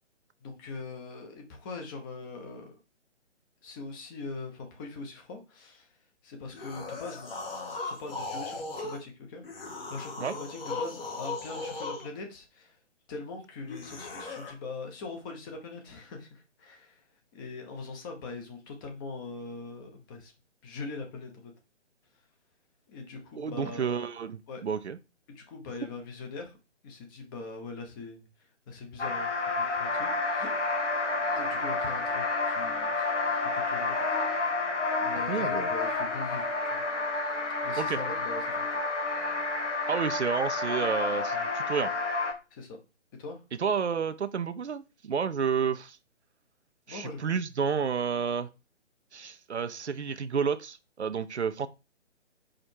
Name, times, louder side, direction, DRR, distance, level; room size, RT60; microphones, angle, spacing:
voice 1, 0.4-2.7 3.6-5.9 6.2-7.3 7.8-12.8 13.1-17.0 17.3-20.3 20.6-21.5 22.9-24.0 24.5-24.6 25.3-26.6 26.8-28.3 28.7-30.5 31.4-34.1 35.0-36.8 37.6-38.8 42.5-42.8 43.2-43.4 46.9-47.3, left 3 dB, 15° left, 1.0 m, -42 dB
sound 1, 6.5-9.0 9.4-12.1 13.7-14.5, left 3 dB, 50° left, 2.0 m, -37 dB
voice 2, 23.4-25.0 35.2-35.7 37.8-38.0 39.9-41.9 43.6-46.0 46.9-48.5 49.1-51.7, right 6 dB, 65° right, 0.7 m, -30 dB
sound 2, 29.0-42.3, left 3 dB, 75° left, 1.7 m, -30 dB
5.1 x 4.3 x 4.4 m
figure-of-eight pair, 140°, 36 cm